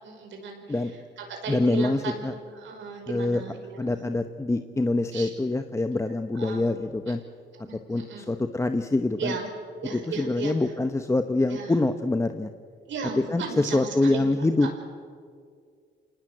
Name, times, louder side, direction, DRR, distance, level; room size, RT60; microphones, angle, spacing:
voice 1, 0.0-0.6 1.2-4.0 5.1-5.3 6.4-6.6 7.7-8.2 9.2-9.5 9.8-10.5 11.5-11.7 12.9-14.3 14.6-14.7, right 5 dB, 70° right, 3 dB, 5.4 m, -35 dB
voice 2, 1.5-2.3 3.1-3.4 3.8-7.2 7.9-9.4 9.9-12.5 13.2-14.7, left 2 dB, 15° left, 8 dB, 0.9 m, -25 dB
27.0 x 19.5 x 8.0 m, 2.1 s
cardioid pair, 90°, 20 cm